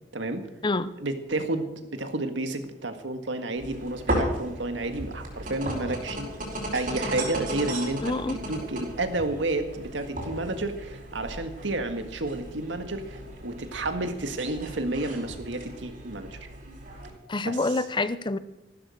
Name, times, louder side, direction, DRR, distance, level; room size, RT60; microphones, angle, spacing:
voice 1, 0.1-0.5 1.0-6.3 6.7-16.4 17.4-17.8, right 2 dB, 85° right, 7 dB, 1.8 m, -31 dB
sound 1, 3.6-17.1, right 1 dB, 50° right, 4.7 m, -35 dB
voice 2, 8.0-8.4 17.3-18.4, left 2 dB, 25° left, 14 dB, 0.6 m, -27 dB
15.0 x 13.0 x 6.4 m, 0.91 s
head